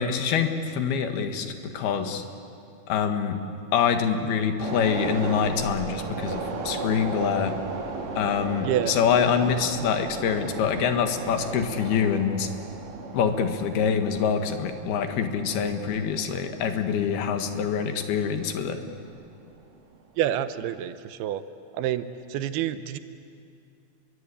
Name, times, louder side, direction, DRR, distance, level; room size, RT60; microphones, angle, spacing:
voice 1, 0.0-2.2 2.9-3.4 3.7-7.6 8.2-12.5 13.1-18.8, left 7 dB, 75° left, 7 dB, 3.6 m, -25 dB
sound 1, 4.6-19.2 19.5-19.7, right 4 dB, 60° right, 4.3 m, -36 dB
voice 2, 8.6-8.9 20.2-21.4 21.7-23.0, right 11 dB, 80° right, 12 dB, 2.8 m, -28 dB
29.5 x 22.5 x 8.5 m, 2.5 s
omnidirectional pair, 4.5 m